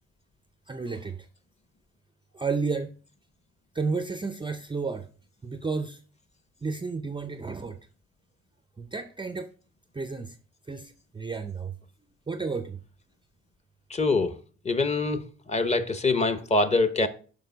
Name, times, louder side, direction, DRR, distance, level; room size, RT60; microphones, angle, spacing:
voice 1, 0.7-1.3 2.3-2.9 3.7-5.1 5.4-6.0 6.6-7.8 8.8-9.5 9.9-10.4 10.7-11.8 12.3-12.8, right 4 dB, 15° right, 0.5 m, -32 dB
voice 2, 13.9-14.4 14.6-17.1, left 3 dB, 20° left, 0.8 m, -24 dB
6.6 x 5.5 x 3.9 m
cardioid pair, 90°, 30 cm